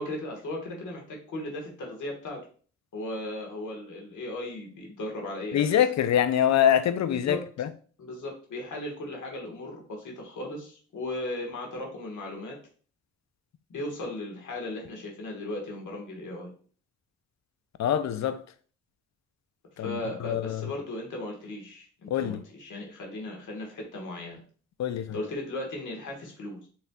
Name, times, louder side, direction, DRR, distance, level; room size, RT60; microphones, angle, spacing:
voice 1, 0.0-2.4 2.9-5.8 7.1-7.4 8.0-12.6 13.7-16.5 19.8-24.4 25.1-26.7, left 1 dB, 80° left, 1.4 m, -37 dB
voice 2, 5.5-7.7 17.8-18.4 19.8-20.7 22.1-22.4 24.8-25.2, left 10 dB, 65° left, 0.5 m, -25 dB
5.5 x 3.1 x 2.2 m
cardioid pair, 55°, 30 cm